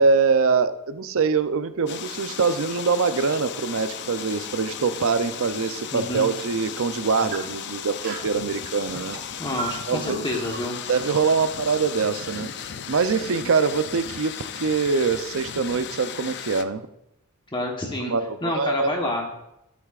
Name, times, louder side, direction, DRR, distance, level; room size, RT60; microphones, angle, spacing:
voice 1, 0.0-9.2 9.9-10.3 10.9-16.8 18.1-19.1, right 5 dB, 60° right, 11 dB, 0.5 m, -24 dB
sound 1, 1.9-16.6, left 8 dB, 50° left, 0.5 m, -36 dB
sound 2, 5.6-5.7 6.2-6.3 6.9-8.4 8.9-13.2, right 5 dB, 45° right, 1.0 m, -41 dB
voice 2, 5.9-6.3 9.4-10.8 17.5-18.1 18.4-19.3, left 1 dB, 20° left, 1 dB, 1.1 m, -28 dB
14.0 x 8.4 x 2.4 m, 0.83 s
head